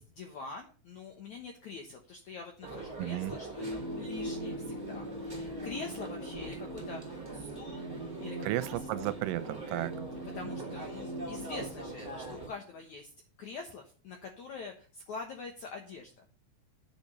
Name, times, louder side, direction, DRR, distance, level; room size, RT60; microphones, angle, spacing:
voice 1, 0.0-3.7 4.0-8.8 10.4-13.1 13.4-16.3, left 4 dB, 80° left, 1.7 m, -45 dB
sound 1, 2.6-12.5, right 2 dB, 10° right, 1.1 m, -44 dB
voice 2, 3.0-3.3 8.4-9.9, right 16 dB, 85° right, 3.1 m, -33 dB
sound 2, 3.6-12.6, equal, 10° left, 1.6 m, -41 dB
9.1 x 5.2 x 7.5 m
omnidirectional pair, 5.4 m